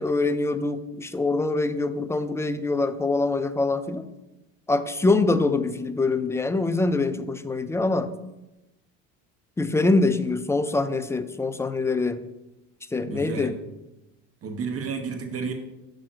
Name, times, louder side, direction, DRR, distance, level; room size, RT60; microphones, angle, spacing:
voice 1, 0.0-4.1 4.7-8.1 9.6-12.2 12.9-13.5, left 3 dB, 5° left, 11 dB, 0.5 m, -24 dB
voice 2, 13.0-13.5 14.4-15.5, right 5 dB, 35° right, 5 dB, 1.2 m, -31 dB
6.2 x 5.5 x 6.3 m, 0.96 s
supercardioid pair, 95°, 38 cm